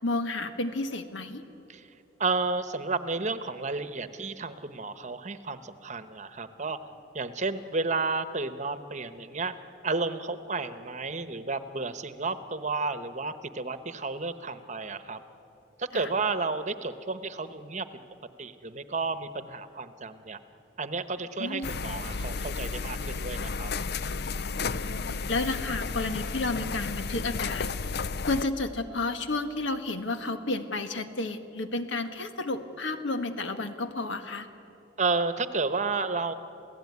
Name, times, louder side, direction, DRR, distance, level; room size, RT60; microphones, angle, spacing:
voice 1, 0.0-1.4 15.9-16.1 21.4-21.7 24.5-34.5, left 2 dB, 75° left, 8 dB, 1.6 m, -32 dB
voice 2, 2.2-6.8 7.1-9.5 9.8-15.2 15.8-17.9 18.4-20.4 20.8-23.7 35.0-36.3, right 3 dB, 40° right, 11 dB, 1.0 m, -32 dB
sound 1, 21.6-28.4, left 4 dB, 55° left, 0.6 m, -33 dB
28.0 x 17.0 x 9.6 m, 2.8 s
head